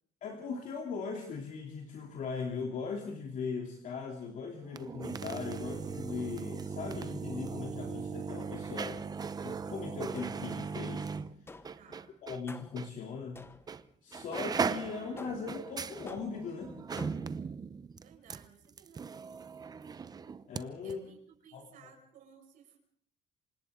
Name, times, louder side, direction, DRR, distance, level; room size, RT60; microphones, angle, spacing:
voice 1, 0.2-9.0 9.4-11.1 12.2-13.5 14.0-16.7 20.5-21.0 21.5-21.6, left 5 dB, 60° left, 1 dB, 3.0 m, -39 dB
sound 1, 4.6-12.4 12.8-12.9 13.7-13.9 14.1-20.6 20.9-21.0, right 5 dB, 25° right, 0.8 m, -38 dB
sound 2, 10.1-10.6 11.5-11.9 12.5-12.9 13.3-13.8 14.3-14.7 15.2-15.6 16.1-16.5 17.0-17.4, left 3 dB, 15° left, 1.0 m, -50 dB
voice 2, 11.8-12.1 18.0-19.4 20.8-22.8, right 7 dB, 65° right, 2 dB, 5.4 m, -57 dB
28.0 x 25.5 x 3.8 m, 0.62 s
cardioid pair, 135°, 15 cm